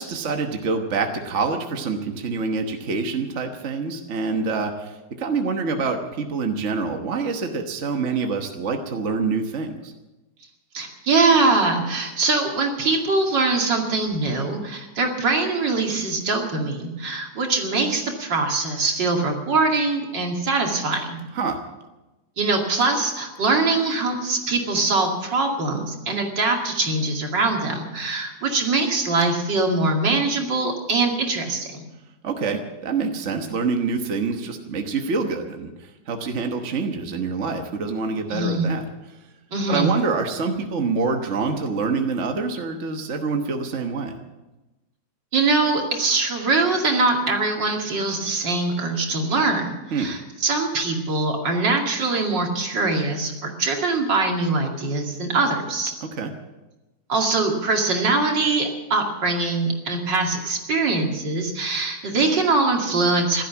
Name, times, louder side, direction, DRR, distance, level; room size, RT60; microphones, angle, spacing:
voice 1, 0.0-9.9 21.3-21.6 32.2-35.7 36.1-38.8 39.7-44.2 49.9-50.1 56.0-56.3, right 4 dB, 45° right, 4 dB, 1.4 m, -26 dB
voice 2, 10.7-21.2 22.4-31.9 38.3-38.7 39.5-39.9 45.3-49.7 50.0-55.9 57.1-63.4, right 3 dB, 70° right, 1 dB, 3.0 m, -22 dB
16.0 x 12.5 x 7.2 m, 1.1 s
omnidirectional pair, 2.1 m